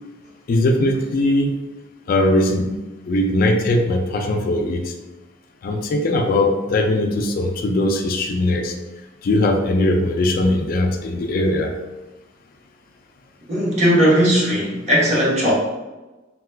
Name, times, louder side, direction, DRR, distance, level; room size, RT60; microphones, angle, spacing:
voice 1, 0.5-1.6 2.1-2.8 3.1-4.9 5.6-8.7 9.2-11.7, left 1 dB, 50° left, 4 dB, 0.3 m, -20 dB
voice 2, 13.5-15.5, equal, 40° right, -5 dB, 0.9 m, -17 dB
2.8 x 2.3 x 3.2 m, 1.1 s
head